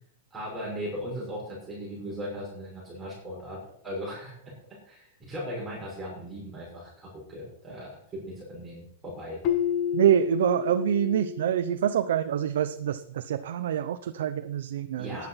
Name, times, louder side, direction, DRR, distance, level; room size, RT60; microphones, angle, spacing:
voice 1, 0.3-3.6 3.8-4.3 4.8-9.4 15.0-15.3, equal, 10° right, -6 dB, 6.1 m, -38 dB
Keyboard (musical), 9.4-12.2, left 9 dB, 30° left, 1.1 m, -30 dB
voice 2, 9.9-15.1, right 10 dB, 65° right, 9 dB, 0.8 m, -26 dB
15.0 x 10.0 x 5.8 m, 0.66 s
supercardioid pair, 170°, 0 cm